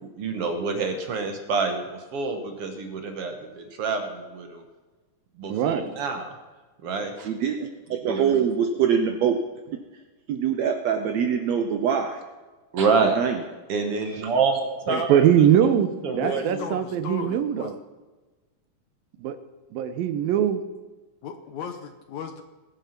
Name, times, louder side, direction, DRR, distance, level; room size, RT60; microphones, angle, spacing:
voice 1, 0.0-4.6 5.4-6.3 6.8-7.3 8.0-8.4 12.7-13.2 13.7-15.7 16.0-16.6, right 4 dB, 55° right, 5 dB, 1.8 m, -27 dB
voice 2, 5.5-5.9 14.9-17.8 19.2-19.4 19.7-20.6, right 9 dB, 90° right, 10 dB, 2.7 m, -22 dB
voice 3, 7.2-9.4 9.7-9.8 10.3-12.2 13.2-13.4, right 7 dB, 70° right, 5 dB, 1.7 m, -24 dB
voice 4, 16.2-17.7 21.2-22.4, left 7 dB, 65° left, 7 dB, 2.0 m, -35 dB
21.5 x 7.4 x 5.9 m, 1.2 s
omnidirectional pair, 4.0 m